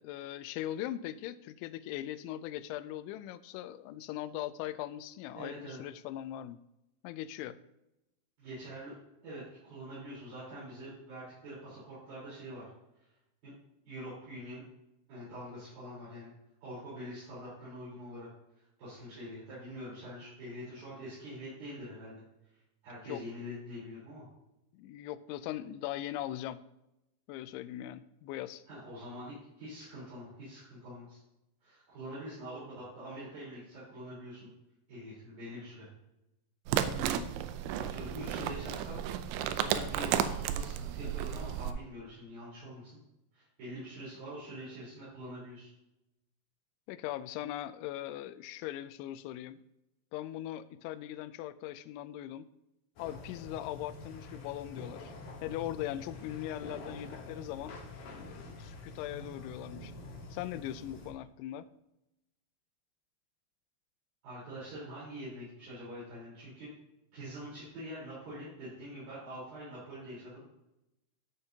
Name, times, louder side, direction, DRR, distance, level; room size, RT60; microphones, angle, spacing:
voice 1, 0.0-6.6 7.0-7.6 23.1-23.2 24.7-26.6 27.3-28.6 36.9-37.4 46.9-49.6 50.1-52.5 53.0-55.1 55.4-57.8 58.2-59.9 60.3-61.7, left 13 dB, 85° left, 13 dB, 2.9 m, -40 dB
voice 2, 5.3-5.8 8.4-8.9 9.2-12.7 13.4-13.5 13.9-14.6 15.1-16.3 16.6-18.3 18.6-22.2 22.8-24.3 28.7-31.2 31.6-34.5 34.9-35.9 37.7-39.0 39.3-43.0 43.3-45.7 64.2-66.7 67.1-70.4, equal, 50° right, -11 dB, 5.5 m, -45 dB
sound 1, 36.7-41.7, right 10 dB, 80° right, 2.8 m, -33 dB
sound 2, 53.0-61.1, left 2 dB, 60° left, 2.2 m, -47 dB
13.0 x 6.8 x 2.8 m, 0.88 s
omnidirectional pair, 5.4 m